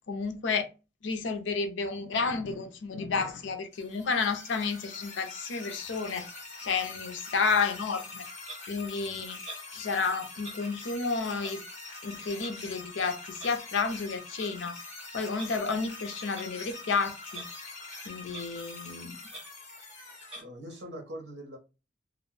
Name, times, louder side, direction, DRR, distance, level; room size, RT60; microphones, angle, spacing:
voice 1, 0.1-0.7 1.0-6.3 6.6-8.3 8.7-9.4 9.7-11.6 12.0-14.8 15.1-17.4 18.1-19.2, left 4 dB, 80° left, 0.5 m, -31 dB
sound 1, 3.7-20.4, left 3 dB, 35° left, 0.8 m, -44 dB
Clock, 8.5-8.6 9.4-9.7 10.4-10.6 11.4-11.6 12.4-12.5 13.4-13.5 14.2-14.5 15.3-15.5 16.3-16.5 17.3-17.5 17.8-17.9 18.3-18.5 18.9-19.0 19.3-19.4 20.3-20.4, right 2 dB, 35° right, 1.0 m, -43 dB
voice 2, 20.4-21.6, equal, 70° right, 0.9 m, -42 dB
2.4 x 2.0 x 3.1 m
head